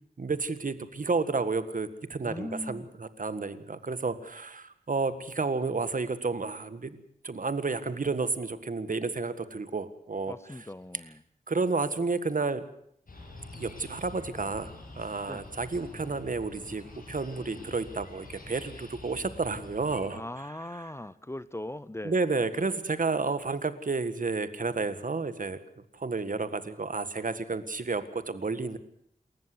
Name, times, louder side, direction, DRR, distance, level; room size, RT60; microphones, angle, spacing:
voice 1, 0.2-10.3 11.5-12.6 13.6-14.7 15.0-20.2 22.0-25.6 25.9-28.8, right 4 dB, 60° right, 1.7 m, -31 dB
voice 2, 2.2-2.8 10.3-11.2 15.3-15.5 20.1-22.2, left 1 dB, 15° left, 0.8 m, -39 dB
sound 1, 13.1-20.1, left 2 dB, 65° left, 7.9 m, -46 dB
28.0 x 14.0 x 8.0 m
wide cardioid pair, 95°, 16 cm